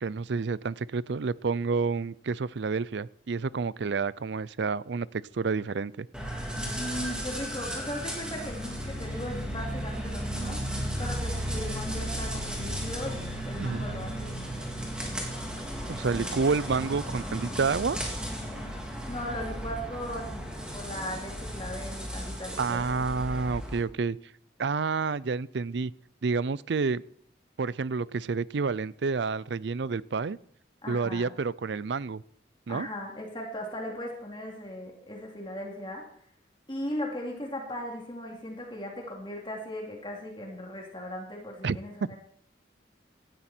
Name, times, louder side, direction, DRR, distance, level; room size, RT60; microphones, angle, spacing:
voice 1, 0.0-6.1 13.6-13.9 15.9-18.0 22.6-24.2 24.6-25.9 26.2-27.0 27.6-30.4 30.9-32.2 32.7-32.9 41.6-41.8, right 4 dB, 65° right, 21 dB, 0.5 m, -29 dB
sound 1, 6.1-23.8, equal, 5° right, 3.4 m, -35 dB
voice 2, 6.6-10.6 11.0-14.8 19.1-22.9 30.8-31.3 32.7-36.0 36.7-42.2, left 1 dB, 25° left, 0 dB, 2.8 m, -38 dB
17.0 x 13.0 x 4.4 m, 0.62 s
head